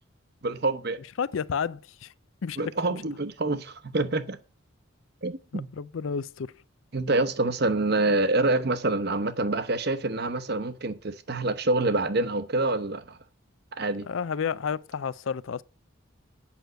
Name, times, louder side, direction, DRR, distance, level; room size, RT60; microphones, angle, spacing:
voice 1, 0.4-1.0 2.6-4.4 5.2-5.7 6.9-13.2 13.8-14.1, right 2 dB, 50° right, 0.9 m, -26 dB
voice 2, 1.2-2.1 2.4-2.7 5.5-6.6 14.1-15.6, left 6 dB, 70° left, 0.4 m, -31 dB
8.6 x 6.2 x 7.9 m
head